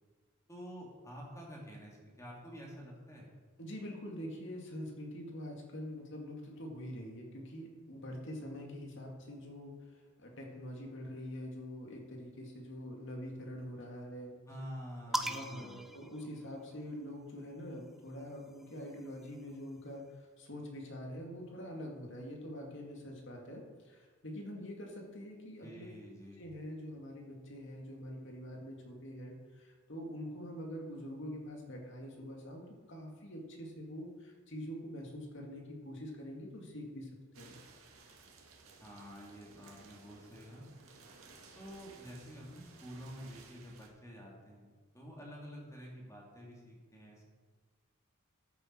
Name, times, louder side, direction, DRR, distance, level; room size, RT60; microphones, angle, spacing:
voice 1, 0.5-3.3 14.5-15.8 25.6-26.4 38.8-40.6 41.6-47.2, equal, 15° left, -2 dB, 2.5 m, -49 dB
voice 2, 3.6-14.3 15.1-25.9 26.4-37.1 37.4-37.6, equal, 60° left, 1 dB, 2.3 m, -45 dB
sound 1, 15.1-16.9 18.0-19.7, equal, ahead, 0.6 m, -41 dB
sound 2, 37.3-43.9, right 4 dB, 85° right, 1.9 m, -58 dB
14.0 x 8.5 x 4.5 m, 1.4 s
head